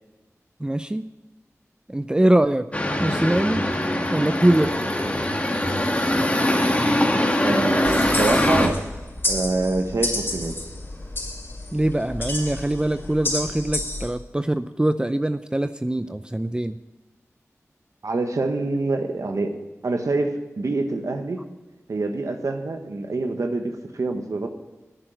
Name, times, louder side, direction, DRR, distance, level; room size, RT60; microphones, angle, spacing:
voice 1, 0.6-1.1 1.9-2.7 3.0-3.6 4.1-4.8 11.7-16.8, right 1 dB, 15° right, 11 dB, 0.5 m, -22 dB
sound 1, 2.7-8.7, left 1 dB, 25° left, 1.9 m, -22 dB
voice 2, 7.4-8.8 9.3-10.5 18.0-19.6 19.8-21.4 21.9-24.5, right 3 dB, 75° right, 5 dB, 1.2 m, -26 dB
sound 2, 7.8-14.1, left 2 dB, 45° left, 4.4 m, -30 dB
10.5 x 8.7 x 7.9 m, 1.1 s
wide cardioid pair, 50°, 5 cm